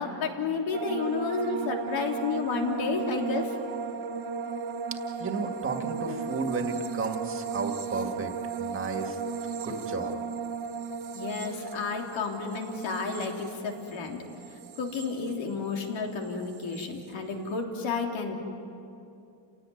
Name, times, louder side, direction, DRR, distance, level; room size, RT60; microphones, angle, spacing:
voice 1, 0.0-3.6 3.9-4.0 11.1-14.2 14.8-18.3, left 4 dB, 75° left, 2 dB, 3.5 m, -31 dB
sound 1, 0.7-15.9 16.2-16.9, right 5 dB, 55° right, 1.5 m, -36 dB
voice 2, 4.9-8.3 8.6-9.2 9.6-10.1, right 4 dB, 25° right, 4 dB, 2.0 m, -33 dB
29.0 x 17.5 x 9.3 m, 2.6 s
cardioid pair, 175°, 46 cm